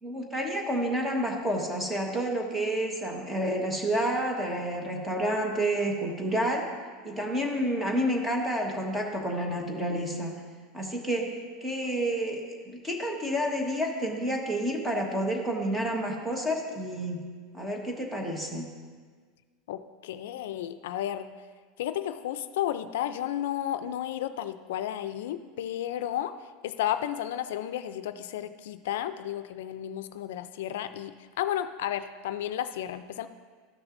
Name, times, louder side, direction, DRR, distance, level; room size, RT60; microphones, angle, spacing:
voice 1, 0.0-6.6 7.0-10.3 10.7-17.2 17.5-18.7, right 1 dB, 5° right, 1 dB, 1.2 m, -29 dB
voice 2, 19.7-21.3 21.8-26.3 26.6-33.3, left 11 dB, 85° left, 11 dB, 0.4 m, -32 dB
13.5 x 6.1 x 2.6 m, 1.5 s
supercardioid pair, 145°, 0 cm